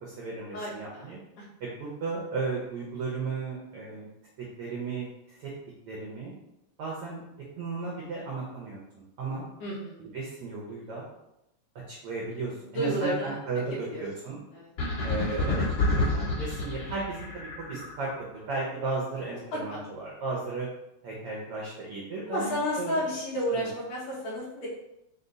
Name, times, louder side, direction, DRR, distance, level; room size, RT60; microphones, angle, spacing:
voice 1, 0.0-1.2 1.6-4.1 4.6-5.5 5.8-6.3 6.8-7.2 7.6-8.8 9.2-9.5 10.0-11.0 11.9-14.4 15.0-15.6 15.9-18.1 18.5-20.7 21.0-23.0 23.5-23.7, right 3 dB, 85° right, -4 dB, 1.3 m, -35 dB
voice 2, 0.5-1.1 1.4-1.5 9.6-10.0 12.6-13.4 13.9-14.0 14.5-14.7 19.5-19.8 22.3-24.7, equal, 70° left, -7 dB, 1.6 m, -31 dB
sound 1, 14.8-18.2, left 3 dB, 50° left, 1.5 m, -28 dB
5.1 x 2.2 x 3.9 m, 0.87 s
omnidirectional pair, 3.6 m